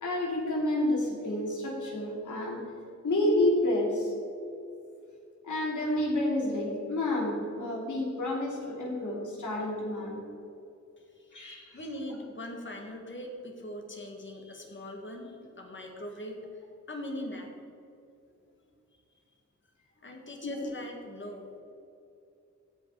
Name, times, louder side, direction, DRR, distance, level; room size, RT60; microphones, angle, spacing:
voice 1, 0.0-2.6 3.0-4.1 5.4-10.2 11.3-11.8 20.4-20.6, left 1 dB, 85° left, -2 dB, 2.7 m, -29 dB
voice 2, 11.7-16.4 16.9-17.5 20.0-21.6, left 1 dB, 40° left, 1 dB, 1.9 m, -41 dB
16.0 x 5.4 x 4.8 m, 2.6 s
wide cardioid pair, 80°, 30 cm